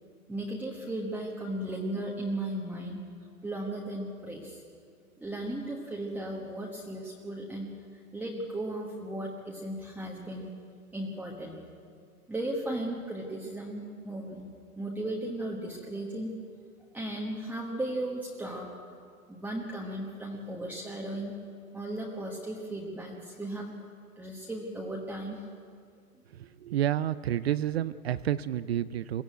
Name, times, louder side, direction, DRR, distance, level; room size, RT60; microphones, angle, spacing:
voice 1, 0.3-3.0 3.4-4.6 5.2-10.5 10.9-11.6 12.3-14.5 14.8-16.3 16.9-18.7 19.3-21.3 21.7-23.8 24.2-25.5, right 1 dB, 5° right, -3 dB, 1.3 m, -36 dB
voice 2, 26.3-29.2, right 11 dB, 45° right, 16 dB, 0.5 m, -30 dB
22.5 x 14.5 x 9.1 m, 2.2 s
hypercardioid pair, 145°, 45 cm